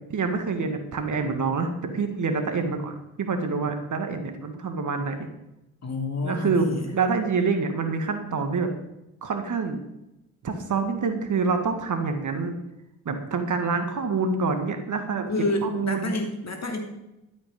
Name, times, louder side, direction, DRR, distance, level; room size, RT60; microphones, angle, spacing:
voice 1, 0.1-5.3 6.2-8.7 9.2-9.8 10.4-12.6 13.1-15.3 15.6-16.1, right 4 dB, 45° right, 6 dB, 2.0 m, -26 dB
voice 2, 5.8-6.8 15.3-16.8, left 2 dB, 40° left, 3 dB, 3.1 m, -28 dB
12.5 x 8.5 x 5.4 m, 0.89 s
hypercardioid pair, 45°, 42 cm